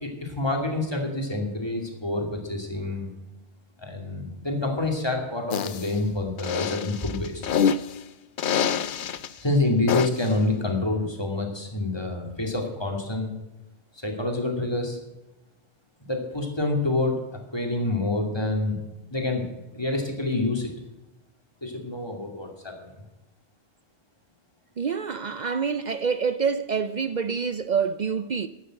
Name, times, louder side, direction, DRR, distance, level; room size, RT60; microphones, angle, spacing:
voice 1, 0.0-3.1 3.8-7.5 9.4-13.3 14.0-15.0 16.0-18.8 19.1-19.5 19.7-20.7 21.6-22.9, left 2 dB, 25° left, 2.7 m, -27 dB
sound 1, 5.5-5.9 6.4-7.9 8.4-9.3 9.9-10.3, left 7 dB, 55° left, 0.7 m, -26 dB
voice 2, 24.8-28.5, right 6 dB, 55° right, 0.5 m, -26 dB
12.5 x 9.2 x 7.8 m
omnidirectional pair, 1.1 m